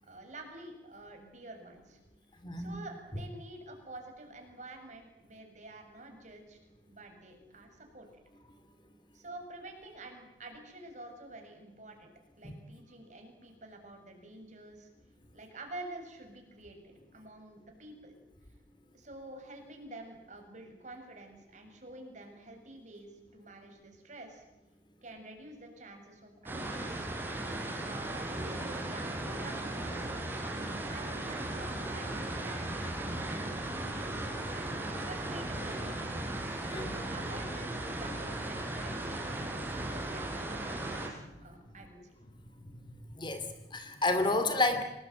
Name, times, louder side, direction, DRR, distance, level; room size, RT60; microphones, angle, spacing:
voice 1, 0.0-2.0 2.6-6.6 6.9-8.1 9.1-12.1 12.4-14.9 15.3-18.1 18.9-24.4 25.0-27.1 27.8-30.4 30.9-34.7 35.1-36.1 36.7-42.1, right 2 dB, 45° right, 4 dB, 6.9 m, -49 dB
voice 2, 2.4-2.8 12.4-12.5 36.7-36.9 41.2-41.3 43.2-44.8, left 2 dB, 25° left, 9 dB, 2.4 m, -30 dB
sound 1, 26.5-41.1, right 1 dB, 10° right, 5.6 m, -37 dB
27.5 x 19.5 x 9.3 m, 1.0 s
head